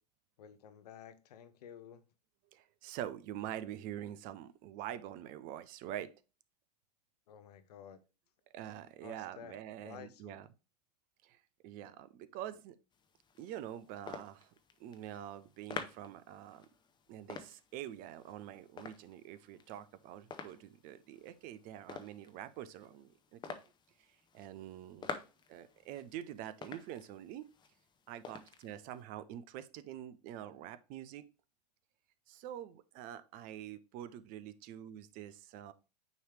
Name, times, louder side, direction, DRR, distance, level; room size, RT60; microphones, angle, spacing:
voice 1, 0.4-2.0 7.3-8.0 9.0-10.4, left 8 dB, 70° left, 0.9 m, -52 dB
voice 2, 2.5-6.1 8.5-10.5 11.2-11.4 11.6-12.7 13.4-14.5 14.8-16.7 17.1-23.6 24.3-25.1 25.5-27.5 28.1-31.2 32.3-35.7, right 11 dB, 40° right, 0.6 m, -46 dB
sound 1, 12.9-29.0, left 5 dB, 20° left, 0.8 m, -50 dB
9.2 x 3.2 x 3.2 m
hypercardioid pair, 95°, 21 cm